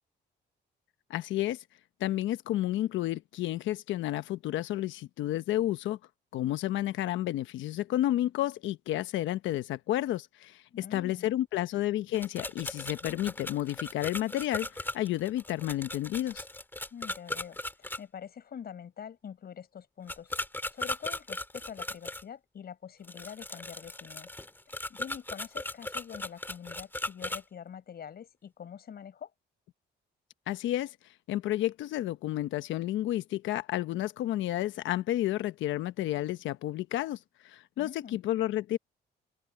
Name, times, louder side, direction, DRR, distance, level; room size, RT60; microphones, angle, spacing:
voice 1, 1.1-1.6 2.0-6.0 6.3-16.4 30.5-30.9 31.3-37.2 37.4-38.8, left 14 dB, 85° left, 1.1 m, -31 dB
voice 2, 10.7-11.3 16.9-20.3 20.7-24.3 24.9-29.3 37.8-38.2, left 8 dB, 55° left, 5.5 m, -45 dB
sound 1, 12.1-18.0 20.1-22.2 23.0-27.4, left 1 dB, 10° left, 2.6 m, -38 dB
open air
cardioid pair, 95°, 19 cm